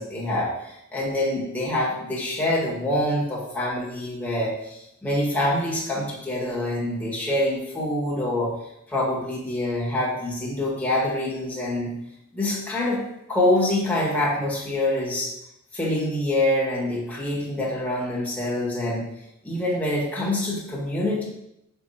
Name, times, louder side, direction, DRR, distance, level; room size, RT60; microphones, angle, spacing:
voice 1, 0.0-8.5 8.9-11.9 12.3-13.0 13.3-15.3 15.7-19.0 19.4-21.3, left 1 dB, 5° left, -6 dB, 1.6 m, -25 dB
6.3 x 3.6 x 4.2 m, 0.82 s
head